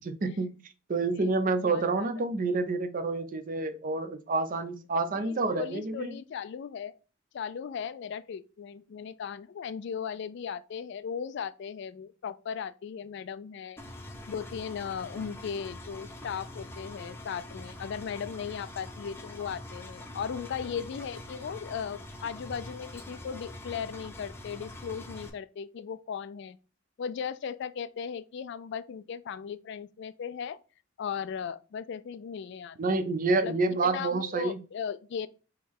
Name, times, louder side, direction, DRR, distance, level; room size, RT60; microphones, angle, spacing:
voice 1, 0.0-0.5 0.9-6.2 32.8-34.6, right 3 dB, 45° right, 0.5 m, -28 dB
voice 2, 1.1-2.1 5.1-6.9 7.3-13.8 14.3-26.6 27.0-30.6 31.0-32.8 33.3-33.5 33.8-35.3, left 7 dB, 60° left, 0.3 m, -37 dB
Engine, 13.8-25.3, left 1 dB, 10° left, 0.6 m, -44 dB
3.7 x 3.1 x 4.6 m
head